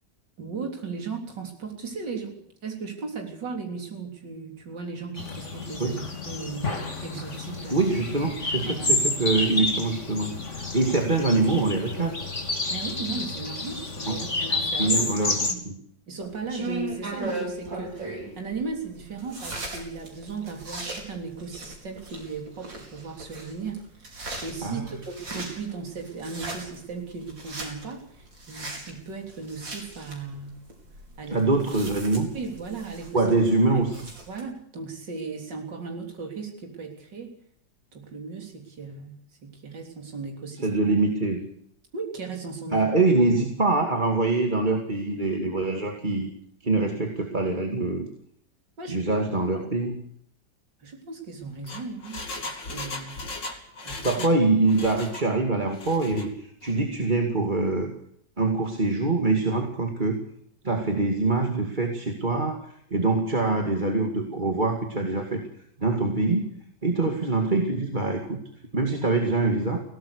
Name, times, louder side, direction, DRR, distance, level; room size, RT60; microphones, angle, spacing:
voice 1, 0.4-6.7 7.0-7.8 8.7-8.9 12.7-15.1 15.5-15.6 16.1-30.6 31.2-31.5 32.3-33.3 33.7-33.8 34.3-37.4 37.9-40.7 41.9-42.9 48.8-49.3 50.8-53.2 53.8-54.3, right 4 dB, 75° right, 2 dB, 4.2 m, -37 dB
sound 1, 5.2-15.5, left 3 dB, 40° left, 3.3 m, -30 dB
voice 2, 7.7-12.2 14.1-14.2 14.8-15.7 24.6-24.9 31.3-32.3 33.1-34.0 40.6-41.5 42.7-46.3 46.6-48.1 48.9-50.0 54.0-57.9 58.4-60.1 60.6-65.4 65.8-66.5 66.8-68.4 68.7-69.8, right 3 dB, 25° right, 3 dB, 2.4 m, -24 dB
sound 2, 16.2-34.4, right 2 dB, 90° right, 5.7 m, -39 dB
Engine, 51.4-54.4 54.7-55.3 55.7-56.3 56.6-56.7, left 3 dB, 80° left, 3.6 m, -37 dB
22.5 x 18.0 x 6.7 m, 0.67 s
omnidirectional pair, 2.0 m